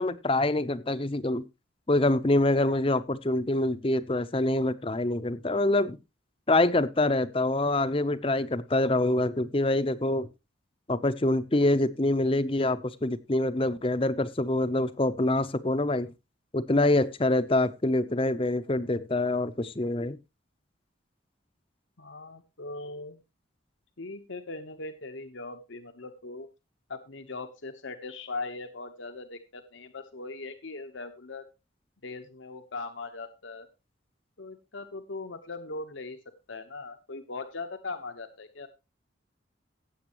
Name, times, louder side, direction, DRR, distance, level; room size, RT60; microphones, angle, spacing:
voice 1, 0.0-1.4 1.9-6.0 6.5-10.3 10.9-16.1 16.5-20.2, left 2 dB, 30° left, 13 dB, 0.7 m, -25 dB
voice 2, 22.0-23.2 24.0-26.5 26.9-31.5 32.0-33.7 34.4-36.2 36.5-38.7, left 3 dB, 75° left, 7 dB, 1.1 m, -40 dB
16.5 x 8.0 x 3.0 m, 0.26 s
head